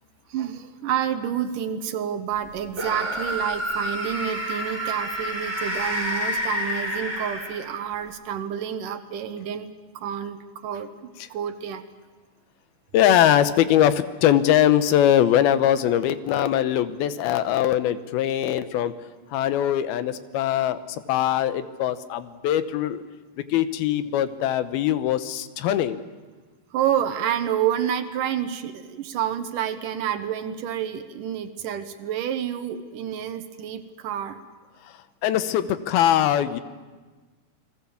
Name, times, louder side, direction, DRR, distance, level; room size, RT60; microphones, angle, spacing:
voice 1, 0.3-10.9 11.3-11.9 16.5-16.6 19.4-19.5 26.7-34.4, right 9 dB, 70° right, 9 dB, 2.5 m, -29 dB
sound 1, 2.7-7.9, equal, 5° right, 5.2 m, -29 dB
voice 2, 12.9-18.9 19.3-20.8 21.1-23.0 23.5-26.0 35.2-36.6, left 11 dB, 90° left, 12 dB, 2.9 m, -21 dB
29.5 x 20.5 x 7.1 m, 1.3 s
omnidirectional pair, 4.2 m